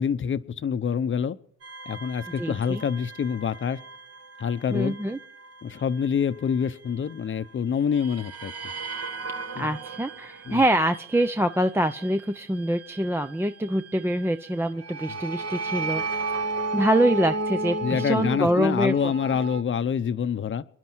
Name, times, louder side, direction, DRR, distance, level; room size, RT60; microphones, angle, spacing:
voice 1, 0.0-1.4 1.9-3.8 4.4-4.9 5.6-8.5 9.6-9.7 10.5-10.6 17.8-20.6, left 7 dB, 40° left, 0.9 m, -26 dB
sound 1, 1.6-7.5 7.9-19.6, right 3 dB, 50° right, 2.0 m, -35 dB
voice 2, 2.4-2.8 4.7-5.2 9.6-16.3 16.7-19.1, right 1 dB, 10° right, 0.7 m, -25 dB
27.5 x 11.0 x 4.6 m
cardioid pair, 90°, 30 cm